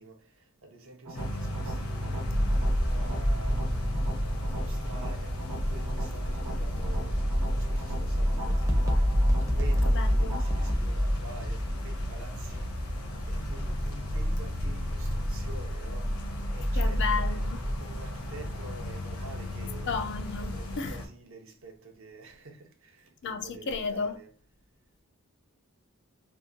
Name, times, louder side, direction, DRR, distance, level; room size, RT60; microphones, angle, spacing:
voice 1, 0.0-19.9 20.4-24.3, right 2 dB, 60° right, 0.6 m, -48 dB
sound 1, 1.0-10.7, right 1 dB, 90° right, 1.1 m, -43 dB
sound 2, 1.1-21.1, left 1 dB, 80° left, 0.7 m, -36 dB
sound 3, 2.2-17.8, equal, 15° right, 0.5 m, -29 dB
voice 2, 9.9-10.4 16.8-17.6 19.9-20.5 20.8-21.0 23.2-24.2, left 5 dB, 50° left, 0.3 m, -33 dB
2.8 x 2.1 x 2.4 m
head